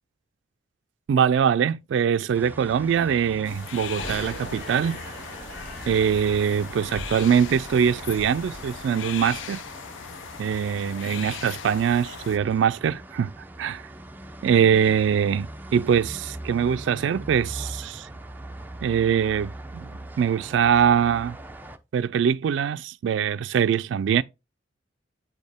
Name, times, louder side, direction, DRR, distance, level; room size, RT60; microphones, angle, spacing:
voice 1, 1.1-5.0 5.9-9.6 10.4-13.3 13.6-13.8 14.4-15.5 15.7-18.1 18.8-19.9 20.2-21.4 21.9-24.2, right 7 dB, 75° right, 0.3 m, -23 dB
sound 1, 2.3-21.8, right 1 dB, 10° right, 0.5 m, -41 dB
sound 2, 3.4-12.4, left 8 dB, 80° left, 0.4 m, -39 dB
sound 3, 3.9-9.4, equal, 55° left, 2.4 m, -40 dB
8.0 x 4.3 x 3.4 m
head